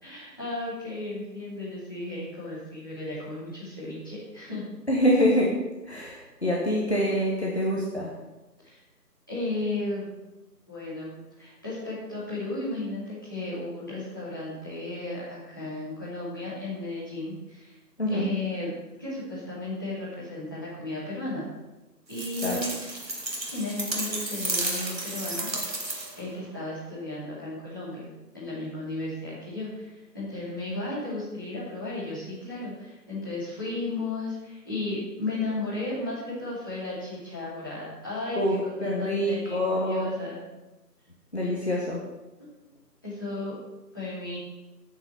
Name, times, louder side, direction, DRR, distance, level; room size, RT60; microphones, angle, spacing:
voice 1, 0.0-4.6 8.6-8.8 9.3-10.1 10.7-17.8 18.1-18.7 19.0-21.5 22.1-22.7 23.5-28.1 28.3-38.4 38.6-40.4 43.0-43.5 43.9-44.4, left 2 dB, 10° left, -13 dB, 2.9 m, -34 dB
voice 2, 4.9-8.2 18.0-18.3 22.4-22.7 38.4-40.2 41.3-42.1, equal, 40° left, -4 dB, 1.7 m, -26 dB
sound 1, 22.1-26.3, right 2 dB, 90° right, 2.7 m, -32 dB
11.5 x 6.6 x 7.3 m, 1.0 s
figure-of-eight pair, 175°, 50 cm